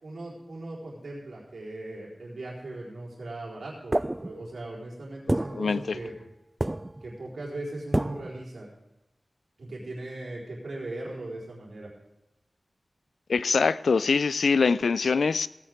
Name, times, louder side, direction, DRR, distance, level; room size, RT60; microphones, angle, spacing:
voice 1, 0.0-6.1 7.0-8.7 9.6-11.9, right 2 dB, 80° right, -5 dB, 4.0 m, -39 dB
sound 1, 3.9-4.7 5.3-6.3 6.6-7.2 7.9-8.4, right 1 dB, 25° right, 0.4 m, -29 dB
voice 2, 5.6-6.0 13.3-15.5, left 5 dB, 90° left, 17 dB, 0.3 m, -23 dB
17.5 x 9.2 x 3.6 m, 0.99 s
cardioid pair, 50°, 0 cm